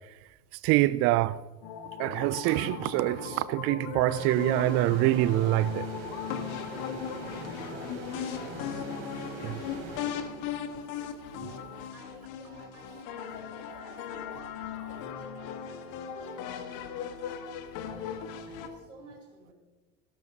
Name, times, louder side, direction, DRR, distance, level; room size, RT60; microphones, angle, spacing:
voice 1, 0.5-1.4 2.0-5.9 9.4-9.6 11.3-11.8 12.9-13.0 13.7-14.0 14.3-14.5 14.8-15.0, right 16 dB, 40° right, 0.4 m, -26 dB
sound 1, 1.6-18.7, left 8 dB, 55° left, 1.6 m, -38 dB
sound 2, 4.1-10.7, right 3 dB, 65° right, 3.4 m, -42 dB
voice 2, 6.6-8.4 11.5-17.5 18.4-19.5, right 2 dB, 80° right, 5.9 m, -54 dB
18.5 x 17.0 x 2.9 m
figure-of-eight pair, 70°, 38 cm